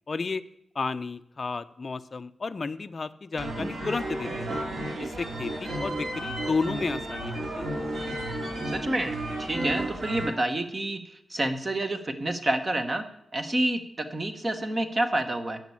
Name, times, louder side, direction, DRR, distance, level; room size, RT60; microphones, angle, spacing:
voice 1, 0.1-0.4 0.7-4.6 5.0-7.8, left 4 dB, 35° left, 9 dB, 0.4 m, -32 dB
sound 1, 3.4-10.3, right 1 dB, 70° right, 2.3 m, -32 dB
voice 2, 8.6-13.1 13.3-15.6, right 1 dB, 25° right, 8 dB, 1.0 m, -29 dB
10.5 x 6.1 x 8.5 m, 0.78 s
wide cardioid pair, 155°, 0 cm